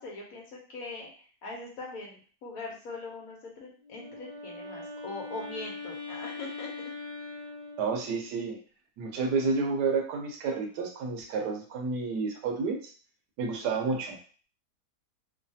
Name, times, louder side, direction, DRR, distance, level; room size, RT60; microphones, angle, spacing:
voice 1, 0.0-6.7 13.6-14.0, left 3 dB, 65° left, -1 dB, 1.1 m, -42 dB
Wind instrument woodwind instrument, 3.8-8.3, left 3 dB, 20° left, 0.8 m, -41 dB
voice 2, 7.8-8.6 9.0-12.8 13.4-14.2, right 4 dB, 80° right, 3 dB, 1.2 m, -30 dB
3.1 x 2.3 x 2.6 m, 0.40 s
omnidirectional pair, 1.8 m